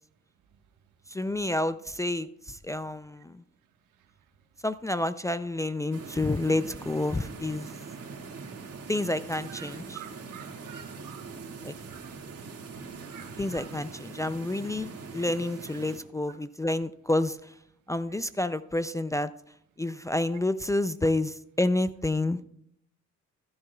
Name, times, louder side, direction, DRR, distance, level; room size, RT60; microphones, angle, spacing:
voice 1, 1.1-3.4 4.6-7.7 8.9-10.0 11.6-11.7 13.4-17.4 17.9-19.3 19.8-22.4, left 2 dB, 10° left, 0.3 m, -29 dB
sound 1, 5.9-16.0, right 4 dB, 55° right, 2.0 m, -42 dB
voice 2, 9.6-11.2 11.9-12.0 13.1-13.7, right 9 dB, 80° right, 1.4 m, -47 dB
14.5 x 12.0 x 2.3 m
cardioid pair, 90°, 30 cm